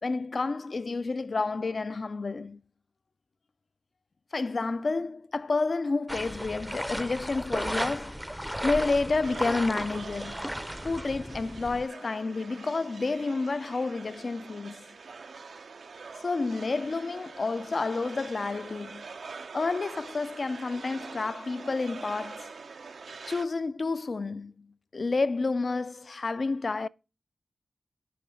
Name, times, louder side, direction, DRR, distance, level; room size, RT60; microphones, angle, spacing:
voice 1, 0.0-2.6 4.3-8.2 8.6-10.5 10.8-14.8 16.2-19.1 19.5-22.5 23.3-26.9, left 3 dB, 60° left, 0.3 m, -30 dB
sound 1, 6.1-11.9, equal, 5° right, 0.5 m, -35 dB
sound 2, 9.2-23.4, right 4 dB, 80° right, 0.5 m, -45 dB
6.9 x 4.9 x 6.1 m
cardioid pair, 45°, 0 cm